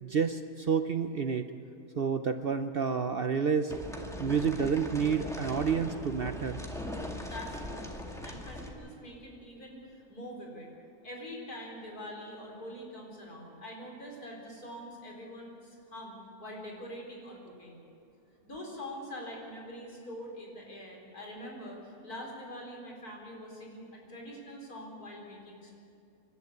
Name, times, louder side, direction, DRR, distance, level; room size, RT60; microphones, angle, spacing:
voice 1, 0.0-1.5 2.0-3.7 4.2-6.6, right 6 dB, 50° right, 8 dB, 0.7 m, -29 dB
sound 1, 3.7-8.7, left 1 dB, ahead, 2.0 m, -40 dB
voice 2, 7.3-10.7 11.0-17.8 18.4-25.7, equal, 80° left, -1 dB, 4.8 m, -44 dB
27.0 x 12.5 x 8.3 m, 2.5 s
omnidirectional pair, 1.6 m